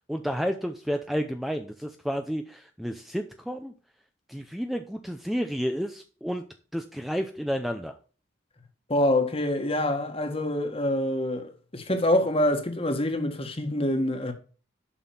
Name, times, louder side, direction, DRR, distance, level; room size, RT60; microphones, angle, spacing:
voice 1, 0.1-3.7 4.3-6.4 6.7-7.9, equal, ahead, 0.6 m, -31 dB
voice 2, 8.9-14.3, left 1 dB, 30° left, 1.6 m, -26 dB
7.5 x 6.2 x 7.1 m
head